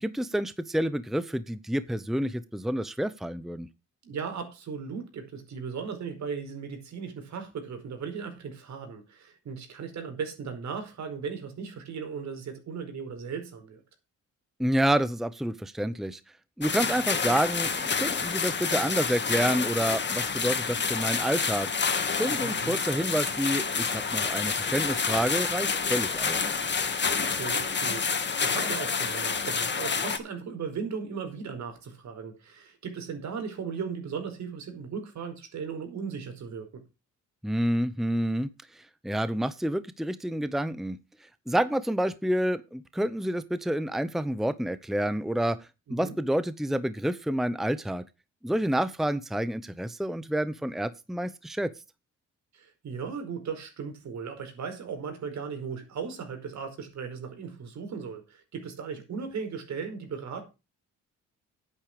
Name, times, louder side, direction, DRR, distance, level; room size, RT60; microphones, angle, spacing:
voice 1, 0.0-3.7 14.6-16.2 16.6-21.7 22.1-26.5 37.4-41.0 41.5-45.6 45.9-48.0 48.4-51.7, right 1 dB, ahead, 0.8 m, -28 dB
voice 2, 4.0-13.8 20.7-20.9 22.3-22.8 27.2-36.8 46.0-46.2 52.5-60.5, right 6 dB, 65° right, 5.0 m, -37 dB
sound 1, 16.6-30.2, left 5 dB, 35° left, 2.4 m, -28 dB
10.5 x 9.0 x 5.1 m
cardioid pair, 90°, 30 cm